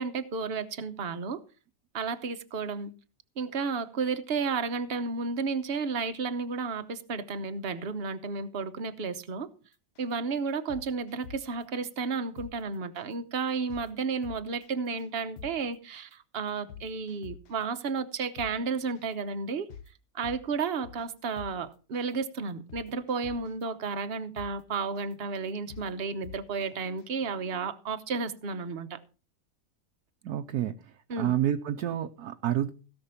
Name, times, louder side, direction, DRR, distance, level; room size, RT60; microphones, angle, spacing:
voice 1, 0.0-1.4 1.9-2.9 3.4-9.5 10.0-19.7 20.1-29.0 31.1-31.3, right 4 dB, 45° right, 1.1 m, -32 dB
sound 1, 9.9-10.1 10.5-11.6 12.0-12.1 12.4-12.5 12.9-13.1 13.5-13.9 14.2-14.7 15.0-15.1 15.4-15.5 15.9-16.1 16.5-17.6 18.0-18.1 18.4-18.5 18.9-19.1 19.5-19.9 20.2-21.1 21.4-21.5 21.9-22.1 22.5-23.6 24.0-24.1 24.3-24.5 24.9-25.1 25.5-25.9 26.2-26.7 27.0-27.1, left 8 dB, 90° left, 1.6 m, -45 dB
voice 2, 30.2-30.7 31.2-32.7, right 11 dB, 70° right, 1.3 m, -28 dB
17.0 x 6.0 x 5.6 m
omnidirectional pair, 1.7 m